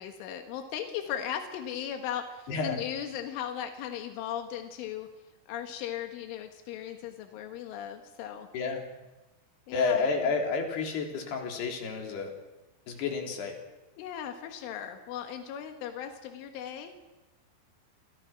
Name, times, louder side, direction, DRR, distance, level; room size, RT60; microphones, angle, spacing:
voice 1, 0.0-5.1 5.5-8.5 9.7-10.3 14.0-16.9, left 9 dB, 90° left, 6 dB, 4.1 m, -37 dB
voice 2, 2.5-2.8 8.5-8.8 9.7-12.3 12.9-13.6, left 4 dB, 60° left, 3 dB, 5.4 m, -30 dB
29.0 x 26.5 x 6.0 m, 1.1 s
omnidirectional pair, 5.4 m